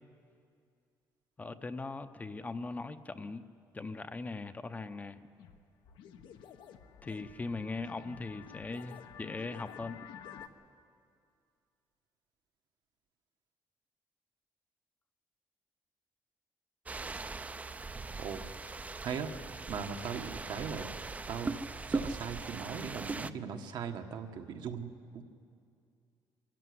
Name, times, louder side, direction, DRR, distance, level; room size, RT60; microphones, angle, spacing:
voice 1, 1.4-3.4 3.7-5.3 7.0-10.1, left 3 dB, 20° left, 10 dB, 0.7 m, -40 dB
sound 1, 5.4-5.6 5.8-10.5, left 8 dB, 85° left, 1.2 m, -50 dB
sound 2, 16.9-23.3, right 3 dB, 20° right, 0.6 m, -39 dB
voice 2, 19.0-19.3 19.7-20.9 21.3-21.6 21.9-25.2, right 6 dB, 65° right, 5 dB, 1.5 m, -39 dB
23.5 x 14.0 x 9.6 m, 2.3 s
cardioid pair, 120°, 8 cm